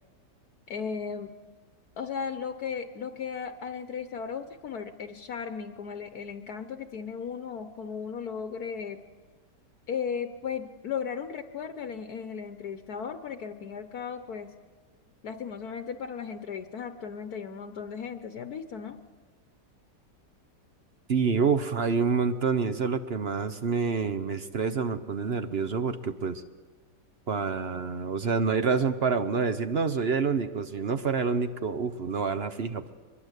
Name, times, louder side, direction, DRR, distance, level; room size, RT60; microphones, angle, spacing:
voice 1, 0.7-1.3 2.0-9.0 9.9-14.5 15.2-19.0, left 6 dB, 65° left, 9 dB, 1.4 m, -36 dB
voice 2, 21.1-26.4 27.3-32.9, right 5 dB, 45° right, 10 dB, 0.9 m, -27 dB
23.5 x 21.5 x 8.2 m, 1.4 s
omnidirectional pair, 1.8 m